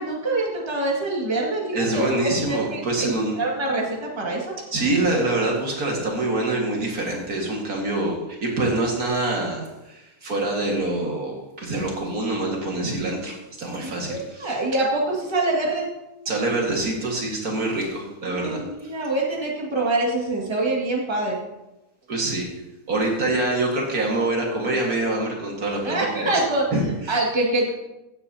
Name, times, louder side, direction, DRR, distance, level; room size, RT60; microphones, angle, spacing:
voice 1, 0.0-2.1 2.5-4.5 13.8-15.9 18.2-21.4 25.8-27.7, right 2 dB, 15° right, -3 dB, 1.9 m, -25 dB
voice 2, 1.7-3.4 4.7-14.5 16.3-18.9 22.1-22.5 22.9-26.3 26.7-27.2, right 2 dB, 60° right, -1 dB, 2.3 m, -25 dB
16.0 x 8.8 x 2.8 m, 0.98 s
omnidirectional pair, 1.8 m